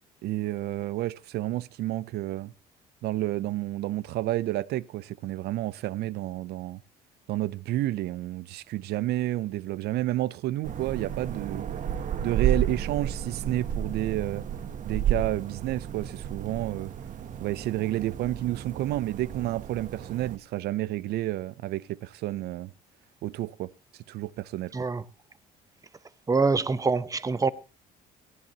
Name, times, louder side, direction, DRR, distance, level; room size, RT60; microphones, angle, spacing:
voice 1, 0.2-2.5 3.0-6.8 7.3-11.7 12.2-14.4 14.8-16.9 17.4-22.7 23.2-23.7 24.1-24.7, right 15 dB, 75° right, 0.6 m, -30 dB
sound 1, 10.6-20.4, right 9 dB, 50° right, 1.0 m, -32 dB
voice 2, 26.3-27.5, right 4 dB, 20° right, 0.8 m, -25 dB
17.5 x 14.0 x 2.9 m
cardioid pair, 110°, 17 cm